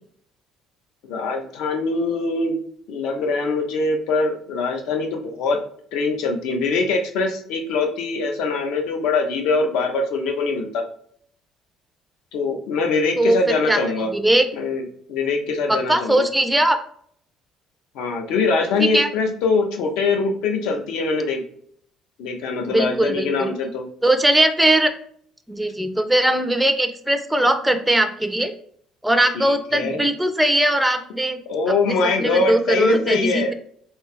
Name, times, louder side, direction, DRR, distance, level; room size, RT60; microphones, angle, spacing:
voice 1, 1.0-2.6 2.9-5.6 5.9-10.8 12.3-14.1 14.5-14.8 15.1-16.3 17.9-21.4 22.2-23.8 29.3-30.0 31.5-33.5, left 3 dB, 80° left, 4 dB, 0.8 m, -23 dB
voice 2, 14.1-14.5 15.7-16.8 18.9-19.1 22.6-23.5 24.0-24.9 25.5-28.5 29.0-31.4 31.9-33.5, right 1 dB, 5° right, 8 dB, 0.4 m, -20 dB
3.2 x 2.8 x 3.3 m, 0.62 s
cardioid pair, 150°, 0 cm